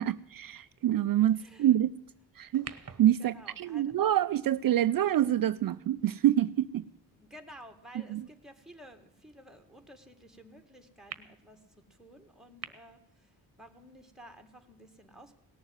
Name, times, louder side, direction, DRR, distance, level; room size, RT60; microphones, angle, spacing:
voice 1, 0.0-1.9 2.4-2.7 3.0-6.8 8.1-8.2, right 12 dB, 60° right, 12 dB, 0.5 m, -26 dB
voice 2, 1.3-1.8 3.2-3.9 7.1-15.4, equal, ahead, 6 dB, 1.9 m, -53 dB
sound 1, 2.5-7.0 7.6-7.7 11.1-11.2 12.6-12.7, right 6 dB, 40° right, 1.2 m, -49 dB
18.0 x 7.2 x 9.4 m, 0.83 s
wide cardioid pair, 110°, 39 cm